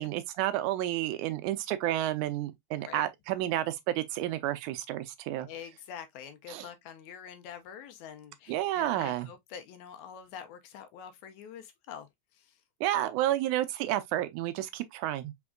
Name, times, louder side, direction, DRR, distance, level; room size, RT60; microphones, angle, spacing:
voice 1, 0.0-5.5 6.5-6.7 8.5-9.3 12.8-15.3, right 14 dB, 80° right, 2.0 m, -31 dB
voice 2, 5.4-12.1 12.4-12.5, left 8 dB, 80° left, 1.9 m, -45 dB
5.1 x 3.6 x 2.3 m
omnidirectional pair, 3.5 m